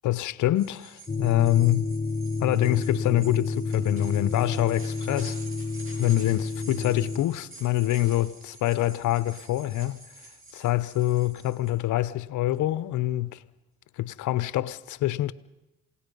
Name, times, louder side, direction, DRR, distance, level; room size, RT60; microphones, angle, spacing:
voice 1, 0.0-1.9 2.4-5.4 6.0-10.0 10.5-13.4 14.0-15.3, left 15 dB, 80° left, 0.8 m, -25 dB
sound 1, 0.5-11.7, right 2 dB, 45° right, 7.6 m, -47 dB
sound 2, 1.1-7.2, left 3 dB, 25° left, 0.8 m, -30 dB
28.0 x 17.5 x 5.3 m
cardioid pair, 90°, 30 cm